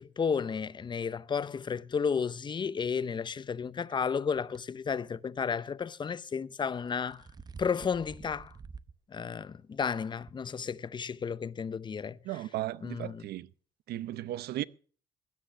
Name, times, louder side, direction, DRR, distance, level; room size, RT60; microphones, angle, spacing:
voice 1, 0.0-7.2 7.6-8.5 9.1-12.2 12.8-13.2, left 6 dB, 25° left, 0.7 m, -33 dB
sound 1, 4.4-4.6 6.6-9.0 9.4-9.5 10.3-10.4, right 5 dB, 25° right, 0.7 m, -48 dB
voice 2, 12.2-13.5 13.9-14.6, right 14 dB, 70° right, 0.8 m, -35 dB
16.5 x 10.5 x 6.1 m
cardioid pair, 110°, 17 cm